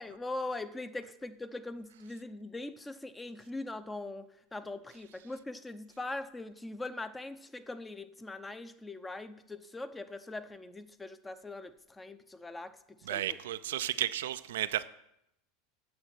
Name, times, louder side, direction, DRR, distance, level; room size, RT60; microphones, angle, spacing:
voice 1, 0.0-13.4, left 2 dB, 15° left, 11 dB, 0.7 m, -41 dB
voice 2, 13.1-14.9, right 12 dB, 70° right, 12 dB, 0.4 m, -33 dB
8.7 x 6.7 x 6.0 m, 0.79 s
figure-of-eight pair, 80°, 0 cm